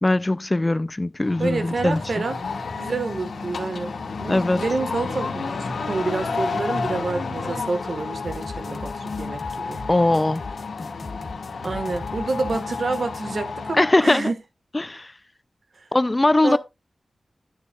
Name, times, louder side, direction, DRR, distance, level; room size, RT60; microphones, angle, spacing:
voice 1, 0.0-2.0 4.3-4.6 9.9-10.4 13.7-14.3 14.7-15.1 15.9-16.6, left 2 dB, 25° left, 0.4 m, -20 dB
sound 1, 1.2-14.0, left 4 dB, 85° left, 1.9 m, -31 dB
voice 2, 1.4-2.4 2.7-3.9 4.2-9.8 11.6-14.3 16.4-16.6, right 3 dB, 65° right, 1.5 m, -28 dB
sound 2, 8.2-13.2, left 3 dB, 50° left, 1.2 m, -39 dB
11.5 x 9.6 x 2.4 m
wide cardioid pair, 85°, 0 cm